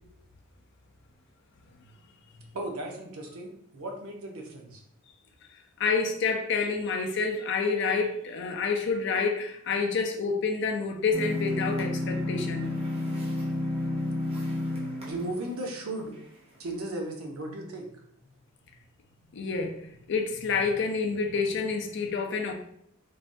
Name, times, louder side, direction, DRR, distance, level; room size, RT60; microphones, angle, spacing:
voice 1, 2.5-4.8 15.0-16.2 16.6-17.9, right 1 dB, 85° right, 0.6 m, -36 dB
voice 2, 5.8-12.7 19.3-22.5, left 4 dB, 55° left, 0.4 m, -28 dB
sound 1, 11.1-15.9, left 1 dB, 30° right, 0.6 m, -31 dB
3.2 x 2.2 x 2.5 m
head